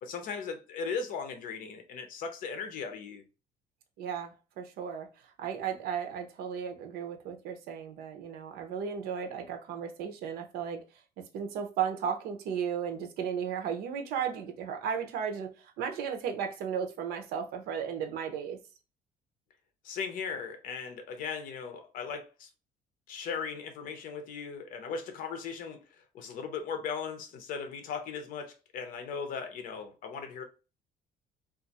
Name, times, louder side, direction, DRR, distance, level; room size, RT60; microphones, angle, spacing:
voice 1, 0.0-3.2 19.8-22.5 23.1-30.4, left 5 dB, 60° left, 0.7 m, -38 dB
voice 2, 4.0-5.1 5.4-10.8 11.3-18.6, right 7 dB, 80° right, 0.7 m, -35 dB
2.5 x 2.4 x 4.0 m
cardioid pair, 180°, 16 cm